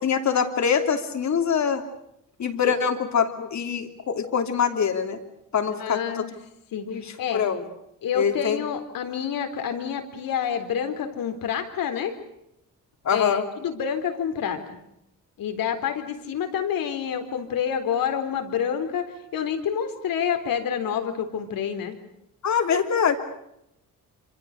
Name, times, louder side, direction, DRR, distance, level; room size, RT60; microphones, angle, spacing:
voice 1, 0.0-1.8 2.4-5.2 5.5-6.3 6.9-7.0 7.3-7.6 8.1-8.6 13.0-13.4 22.4-23.2, left 7 dB, 55° left, 6 dB, 3.1 m, -24 dB
voice 2, 5.8-6.3 6.7-7.4 8.0-12.1 13.1-14.8 15.4-21.9, left 8 dB, 85° left, 6 dB, 4.0 m, -28 dB
26.5 x 26.5 x 6.7 m, 0.81 s
cardioid pair, 125°, 34 cm